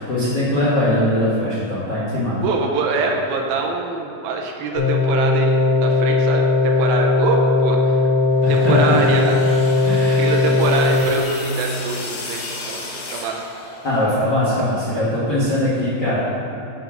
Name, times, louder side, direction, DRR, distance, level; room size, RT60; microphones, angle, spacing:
voice 1, 0.0-2.4 8.4-9.0 9.8-10.2 13.8-16.2, left 1 dB, 45° left, -8 dB, 1.3 m, -21 dB
voice 2, 2.4-8.1 8.5-9.4 10.0-13.4, right 4 dB, 75° right, 2 dB, 2.4 m, -24 dB
sound 1, 4.7-11.0, left 3 dB, 25° left, 1.7 m, -18 dB
sound 2, 8.3-14.2, left 3 dB, 85° left, 1.1 m, -34 dB
7.6 x 7.2 x 6.0 m, 2.9 s
omnidirectional pair, 4.4 m